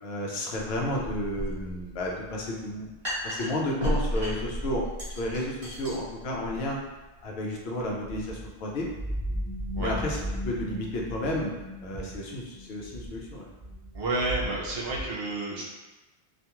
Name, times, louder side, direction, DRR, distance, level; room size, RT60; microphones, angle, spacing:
voice 1, 0.0-2.9 3.2-4.8 5.2-6.8 7.2-8.9 9.8-10.2 10.4-11.5 11.8-13.5, left 1 dB, 80° left, -1 dB, 0.8 m, -32 dB
sound 1, 0.5-8.3, equal, 45° right, 1.0 m, -35 dB
sound 2, 8.1-15.0, equal, 30° left, 0.8 m, -36 dB
voice 2, 13.9-15.6, right 2 dB, 75° right, -3 dB, 0.8 m, -30 dB
2.4 x 2.3 x 2.9 m, 1.1 s
omnidirectional pair, 1.0 m